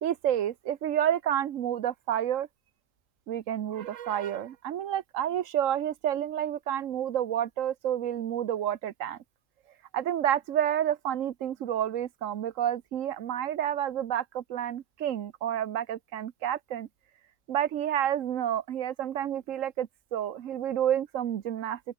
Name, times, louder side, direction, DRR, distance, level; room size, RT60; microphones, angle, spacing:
voice 1, 0.0-2.5 3.3-9.2 9.9-16.9 17.5-21.8, right 10 dB, 80° right, 1.2 m, -29 dB
open air
omnidirectional pair, 1.3 m